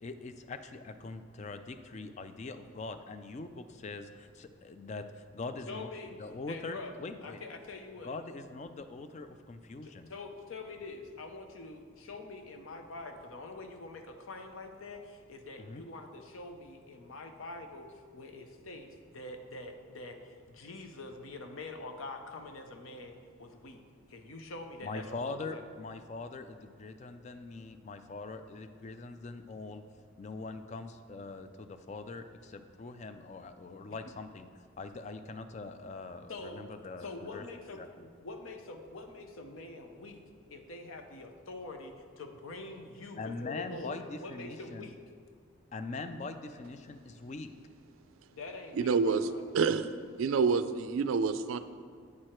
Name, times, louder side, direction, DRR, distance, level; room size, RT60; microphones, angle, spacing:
voice 1, 0.0-5.9 6.2-7.4 8.0-10.1 15.6-15.8 24.8-29.8 30.2-34.5 34.8-37.4 37.8-38.1 43.2-44.9 45.7-47.5, left 3 dB, 35° left, 9 dB, 0.3 m, -42 dB
voice 2, 5.7-6.2 6.5-8.2 9.8-23.8 24.1-25.6 36.3-36.7 37.0-37.8 38.2-40.2 40.5-45.0 48.3-49.6, left 2 dB, 75° left, 5 dB, 0.7 m, -45 dB
voice 3, 48.7-49.3 49.5-49.9 50.2-51.6, right 5 dB, 75° right, 12 dB, 0.3 m, -27 dB
8.4 x 4.7 x 4.4 m, 2.1 s
head